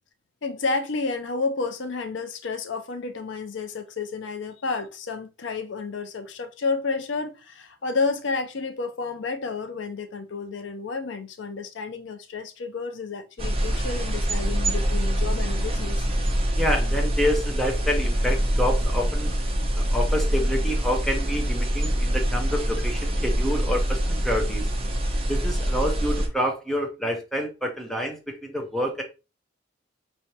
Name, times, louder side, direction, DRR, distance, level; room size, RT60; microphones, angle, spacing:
voice 1, 0.4-16.1, left 4 dB, 75° left, 0.5 m, -31 dB
sound 1, 13.4-26.3, equal, 30° right, 0.9 m, -24 dB
voice 2, 16.6-19.3 19.7-24.7 25.3-29.0, equal, ahead, 0.7 m, -28 dB
4.8 x 3.2 x 2.8 m
head